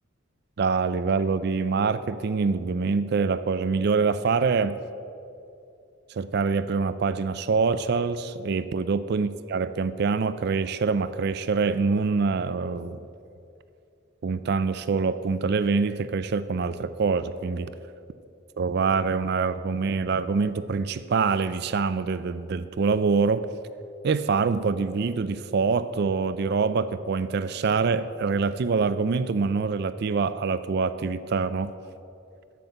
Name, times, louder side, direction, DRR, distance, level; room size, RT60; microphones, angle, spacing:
voice 1, 0.6-4.7 6.1-13.0 14.2-17.7 18.6-23.5 24.0-31.7, right 4 dB, 55° right, 13 dB, 0.4 m, -25 dB
9.4 x 7.6 x 7.9 m, 2.6 s
head